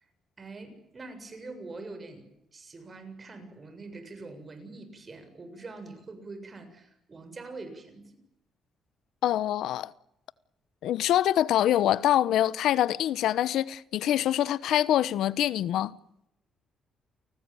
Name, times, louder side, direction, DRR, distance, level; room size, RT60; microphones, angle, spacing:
voice 1, 0.4-8.2, right 3 dB, 35° right, 7.5 m, -44 dB
voice 2, 9.2-9.9 10.8-15.9, left 12 dB, 80° left, 0.9 m, -25 dB
29.5 x 19.5 x 9.1 m
cardioid pair, 90°, 0 cm